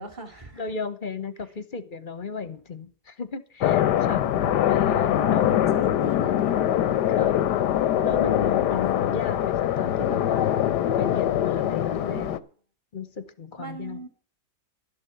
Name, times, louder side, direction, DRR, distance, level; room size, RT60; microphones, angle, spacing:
voice 1, 0.0-0.6 3.9-4.2 5.2-6.7 8.5-9.0 11.6-12.4 13.6-14.1, right 1 dB, 30° right, 2.4 m, -40 dB
voice 2, 0.6-4.3 4.7-5.6 7.1-7.5 8.0-10.6 11.0-12.3 12.9-14.0, left 5 dB, 35° left, 1.0 m, -34 dB
sound 1, 3.6-12.4, left 11 dB, 85° left, 1.4 m, -23 dB
12.0 x 7.3 x 8.0 m
omnidirectional pair, 1.8 m